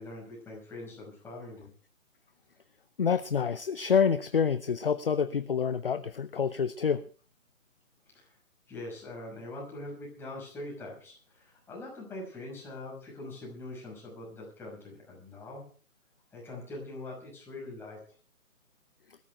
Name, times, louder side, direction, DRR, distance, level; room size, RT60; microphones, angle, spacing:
voice 1, 0.0-1.7 8.1-8.4 8.7-15.7 16.3-18.0, left 2 dB, 5° left, -4 dB, 5.5 m, -43 dB
voice 2, 3.0-7.0, left 6 dB, 40° left, 13 dB, 0.7 m, -27 dB
21.5 x 13.5 x 3.4 m, 0.41 s
figure-of-eight pair, 150°, 43 cm